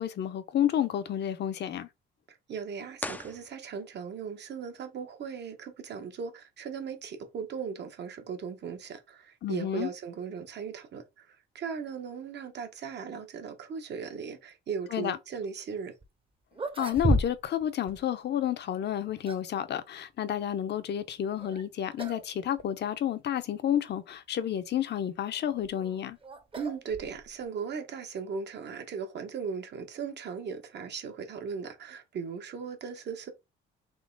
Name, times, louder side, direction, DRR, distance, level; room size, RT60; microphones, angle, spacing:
voice 1, 0.0-1.9 9.4-9.9 14.9-15.2 16.8-26.2, left 10 dB, 60° left, 0.7 m, -30 dB
voice 2, 2.5-15.9 26.5-33.3, right 6 dB, 60° right, 1.1 m, -38 dB
sound 1, 2.9-4.1, left 2 dB, 10° left, 0.4 m, -40 dB
sound 2, 16.0-16.1 16.5-17.6 17.9-18.0 18.9-19.6 21.4-21.6 22.0-22.3 22.6-22.7 23.5-23.6 25.3-27.5, right 2 dB, 25° right, 0.8 m, -33 dB
3.8 x 3.0 x 3.8 m
cardioid pair, 90°, 20 cm